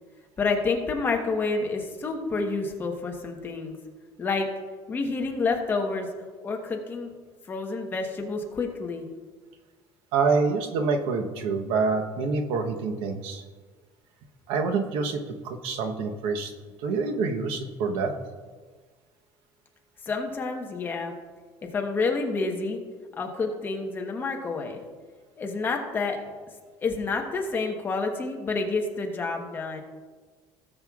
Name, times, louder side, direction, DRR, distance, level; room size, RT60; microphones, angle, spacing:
voice 1, 0.4-3.8 4.2-4.5 4.9-6.1 6.4-7.1 7.5-9.1 20.1-21.1 21.7-22.8 23.2-24.8 25.4-26.2 26.8-29.8, left 4 dB, 20° left, 2 dB, 1.1 m, -28 dB
voice 2, 10.1-13.4 14.5-16.5 16.8-18.1, right 4 dB, 75° right, 5 dB, 1.0 m, -26 dB
17.5 x 7.5 x 2.4 m, 1.4 s
cardioid pair, 165°, 9 cm